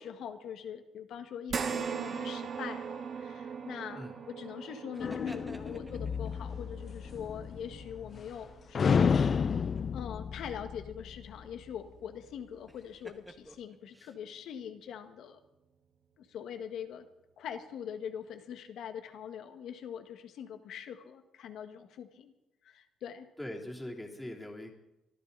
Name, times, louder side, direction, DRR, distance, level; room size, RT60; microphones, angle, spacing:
voice 1, 0.0-9.5 9.9-15.4 16.2-17.1 17.4-22.3 22.6-23.3, left 8 dB, 75° left, 7 dB, 1.8 m, -43 dB
sound 1, 1.5-10.1 10.5-10.7 12.1-12.2, right 6 dB, 55° right, 1.6 m, -41 dB
sound 2, 4.9-6.4 9.4-10.0 12.7-14.2, right 1 dB, 10° right, 1.8 m, -52 dB
sound 3, 5.0-8.4 8.7-11.4, left 6 dB, 45° left, 0.7 m, -31 dB
voice 2, 23.4-24.7, left 1 dB, 10° left, -1 dB, 3.2 m, -41 dB
24.5 x 14.0 x 4.1 m, 0.92 s
cardioid pair, 90°, 0 cm